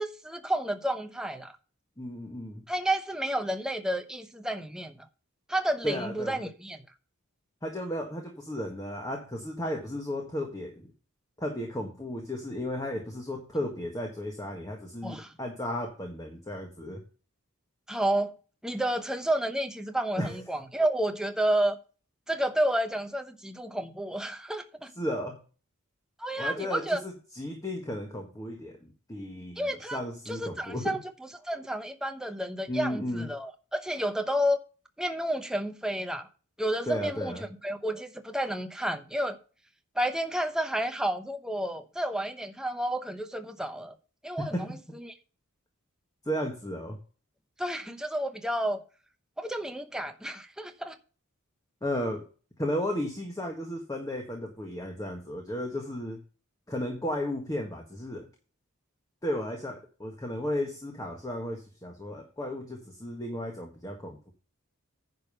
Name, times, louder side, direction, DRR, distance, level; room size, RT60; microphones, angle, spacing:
voice 1, 0.0-1.6 2.7-5.0 5.5-6.8 15.0-15.3 17.9-18.3 18.6-21.8 22.3-24.9 26.2-27.0 29.6-30.0 30.3-31.0 31.4-34.6 35.0-36.3 36.6-39.4 39.9-43.9 44.2-44.7 45.0-45.1 47.6-48.8 49.4-51.0, right 1 dB, 5° right, 0.9 m, -30 dB
voice 2, 2.0-2.6 5.8-6.4 7.6-10.9 11.4-17.0 20.2-20.4 25.0-25.4 26.3-31.0 32.7-33.3 36.9-37.4 44.4-44.7 46.2-47.0 51.8-52.2 52.6-56.2 56.7-58.3 59.2-64.3, left 1 dB, 15° left, 1.6 m, -34 dB
10.5 x 5.3 x 5.5 m
head